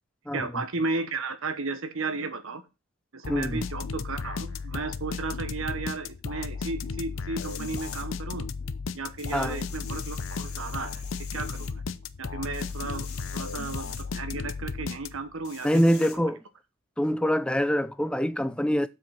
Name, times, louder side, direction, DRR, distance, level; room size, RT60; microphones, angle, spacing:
voice 1, 0.3-2.6 3.1-8.5 8.9-11.8 12.2-15.7 16.0-16.1, right 3 dB, 75° right, 1.2 m, -34 dB
sound 1, 3.2-15.4, left 4 dB, 65° left, 0.6 m, -35 dB
voice 2, 3.3-3.6 9.3-9.6 15.6-16.4 17.0-18.9, equal, 5° left, 0.4 m, -24 dB
sound 2, 7.4-8.0 9.2-11.7 12.5-14.0 15.4-16.2, left 8 dB, 90° left, 2.0 m, -45 dB
7.6 x 5.8 x 5.8 m
head